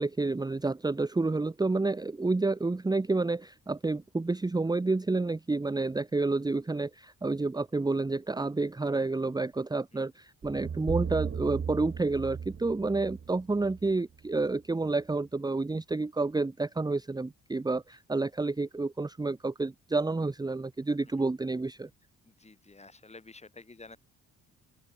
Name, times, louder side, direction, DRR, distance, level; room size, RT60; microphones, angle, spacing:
voice 1, 0.0-21.9, right 3 dB, 15° right, 1.0 m, -29 dB
sound 1, 10.4-14.6, right 7 dB, 45° right, 3.8 m, -37 dB
voice 2, 22.2-24.0, left 3 dB, 20° left, 6.1 m, -51 dB
open air
cardioid pair, 90°, 30 cm